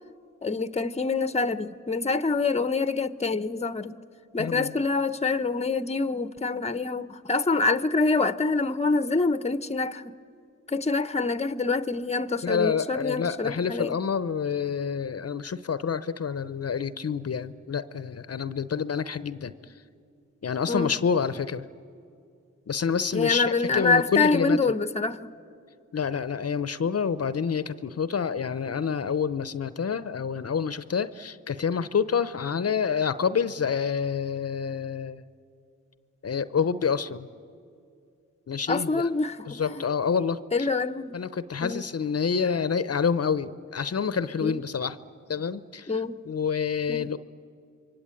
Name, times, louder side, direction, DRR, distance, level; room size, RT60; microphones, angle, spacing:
voice 1, 0.4-4.0 4.3-10.2 10.7-14.0 20.7-21.0 23.1-25.3 38.7-39.8 40.5-41.2 41.6-41.8 44.4-44.6 45.9-46.2 46.9-47.1, left 3 dB, 20° left, 0.9 m, -26 dB
voice 2, 4.4-4.7 12.4-19.5 20.4-21.6 22.7-24.6 25.9-35.2 36.2-37.3 38.5-39.1 39.5-40.7 41.1-45.0 45.3-47.2, left 6 dB, 50° left, 0.8 m, -28 dB
27.5 x 23.5 x 9.0 m
cardioid pair, 55°, 31 cm